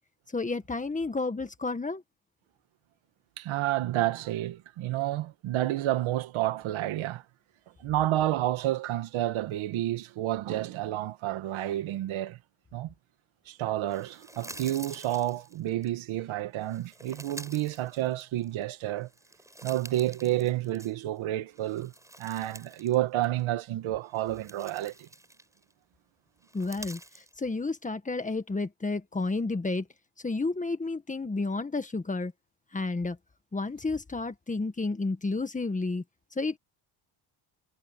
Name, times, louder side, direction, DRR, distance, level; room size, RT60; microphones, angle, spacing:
voice 1, 0.3-2.0 26.5-27.0 27.4-29.9 30.2-32.3 32.7-33.2 33.5-36.0 36.3-36.6, left 3 dB, 15° left, 1.7 m, -31 dB
voice 2, 3.4-7.2 7.8-12.4 12.7-12.9 13.5-19.1 19.6-21.9 22.2-25.1, right 14 dB, 80° right, 1.9 m, -30 dB
sound 1, 13.9-15.9 16.6-18.6 19.0-21.2 21.5-23.0 23.2-23.4 24.0-25.7 26.4-27.3, right 1 dB, 5° right, 4.7 m, -48 dB
cardioid pair, 135°, 47 cm